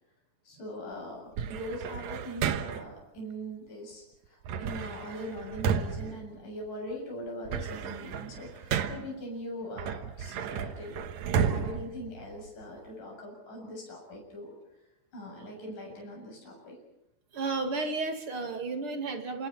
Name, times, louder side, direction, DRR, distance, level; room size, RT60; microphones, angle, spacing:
voice 1, 0.5-14.5 15.1-16.8, equal, 60° left, 0 dB, 8.9 m, -41 dB
sound 1, 1.4-3.0 4.4-6.9 7.3-9.2 9.8-12.8, right 7 dB, 65° right, 2.2 m, -33 dB
voice 2, 17.3-19.5, right 3 dB, 40° right, 5 dB, 2.8 m, -32 dB
28.5 x 27.5 x 4.4 m, 0.92 s
omnidirectional pair, 4.0 m